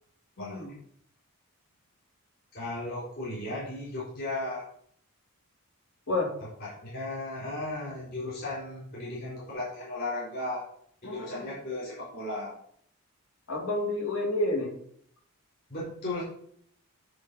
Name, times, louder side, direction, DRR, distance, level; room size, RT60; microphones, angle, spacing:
voice 1, 0.4-0.7 6.1-6.3 11.0-11.5 13.5-14.7, left 2 dB, 65° left, 0 dB, 2.4 m, -30 dB
voice 2, 2.5-4.7 6.4-10.6 11.0-12.5 15.7-16.2, left 2 dB, 45° left, -8 dB, 3.8 m, -35 dB
9.6 x 3.7 x 5.6 m, 0.63 s
head